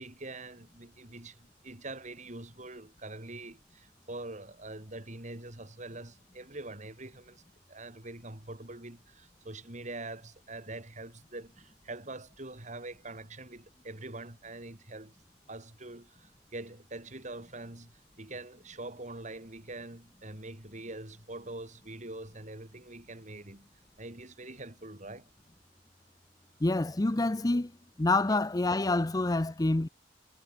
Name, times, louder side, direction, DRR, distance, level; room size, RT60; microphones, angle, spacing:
voice 1, 0.0-7.4 7.7-15.2 15.5-23.7 24.0-25.3 27.5-27.6 28.3-28.4, right 2 dB, 45° right, 4.6 m, -44 dB
voice 2, 26.6-27.7 28.0-29.9, left 2 dB, 20° left, 0.6 m, -27 dB
head